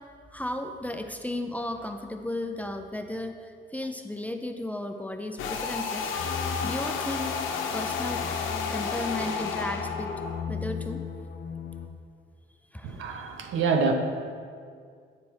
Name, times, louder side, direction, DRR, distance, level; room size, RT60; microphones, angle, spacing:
voice 1, 0.3-6.1 6.6-8.2 8.7-10.1 10.5-11.0 12.7-13.0, left 1 dB, 5° left, 5 dB, 0.5 m, -34 dB
sound 1, 5.4-10.4, left 5 dB, 90° left, 0.7 m, -31 dB
sound 2, 6.2-11.9, left 6 dB, 50° left, 0.7 m, -37 dB
voice 2, 12.8-13.9, right 5 dB, 80° right, 4 dB, 0.8 m, -26 dB
8.8 x 4.5 x 4.1 m, 2.2 s
cardioid pair, 90°, 20 cm